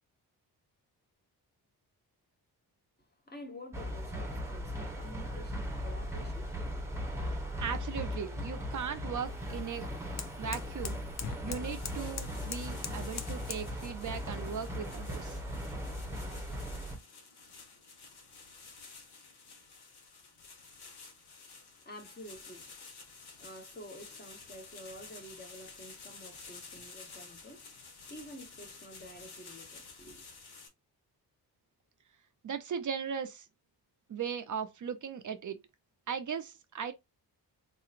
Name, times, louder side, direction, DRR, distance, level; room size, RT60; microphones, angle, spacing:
voice 1, 3.3-6.8 21.8-22.7 23.2-27.8 28.1-30.2, equal, 25° left, 1.0 m, -50 dB
sound 1, 3.7-17.0, equal, 5° right, 0.9 m, -38 dB
voice 2, 7.6-9.9 10.4-11.0 11.4-15.4 32.4-33.4 34.1-35.6 36.1-36.9, right 7 dB, 50° right, 0.6 m, -38 dB
sound 2, 7.9-13.7, left 7 dB, 45° left, 0.5 m, -46 dB
sound 3, 11.6-30.7, left 4 dB, 75° left, 1.3 m, -52 dB
4.1 x 2.8 x 2.5 m
wide cardioid pair, 125°, 39 cm